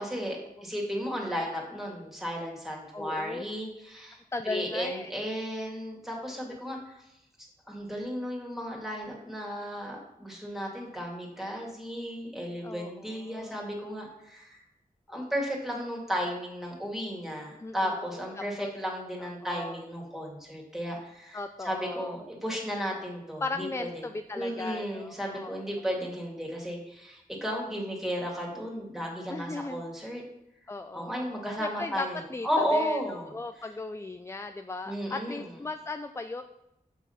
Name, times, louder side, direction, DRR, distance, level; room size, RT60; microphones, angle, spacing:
voice 1, 0.0-7.0 7.7-14.6 15.1-24.0 24.4-30.2 30.9-32.2 32.4-33.3 34.9-35.5, equal, ahead, -2 dB, 2.3 m, -34 dB
voice 2, 2.9-3.4 4.3-5.1 6.5-6.6 12.6-13.6 17.6-18.1 18.4-18.7 19.2-19.8 21.3-22.2 23.4-25.7 29.3-29.9 30.7-33.0 33.3-36.4, left 3 dB, 15° left, 8 dB, 0.4 m, -37 dB
6.8 x 6.2 x 5.8 m, 0.84 s
wide cardioid pair, 85°, 15 cm